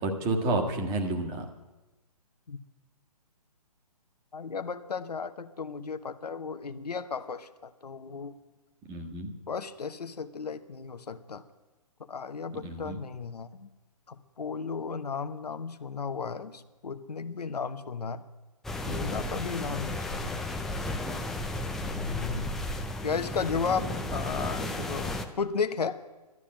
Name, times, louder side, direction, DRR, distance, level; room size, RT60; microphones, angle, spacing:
voice 1, 0.0-1.5 8.9-9.3 12.5-13.0 23.8-23.9, right 2 dB, 20° right, 4 dB, 1.6 m, -30 dB
voice 2, 4.3-8.3 9.5-11.4 12.1-13.7 14.1-18.2 18.9-20.4 21.8-22.6 23.0-26.0, left 5 dB, 75° left, 10 dB, 1.0 m, -34 dB
sound 1, 18.6-25.3, left 2 dB, ahead, 0.4 m, -34 dB
12.5 x 9.8 x 8.8 m, 1.1 s
hypercardioid pair, 145°, 20 cm